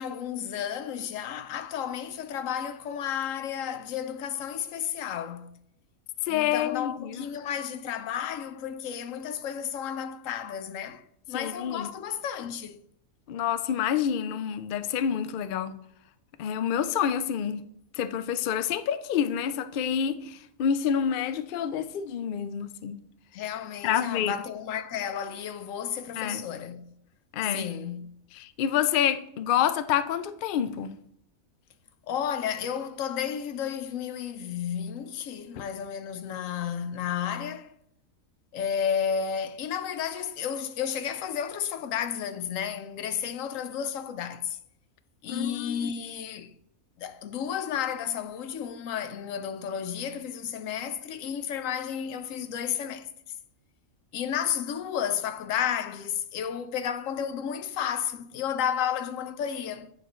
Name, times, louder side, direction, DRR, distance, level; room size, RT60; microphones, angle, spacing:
voice 1, 0.0-5.5 6.3-12.8 23.3-26.8 27.5-28.1 32.1-37.7 38.5-44.6 45.2-46.5 47.0-53.1 54.1-59.9, left 8 dB, 70° left, 0.9 m, -32 dB
voice 2, 6.3-7.2 11.3-11.9 13.3-15.8 16.4-17.6 18.0-23.0 23.8-24.4 26.2-26.4 27.3-27.7 28.4-30.9 45.3-45.9, left 9 dB, 85° left, 0.4 m, -28 dB
9.4 x 5.7 x 3.1 m
omnidirectional pair, 1.5 m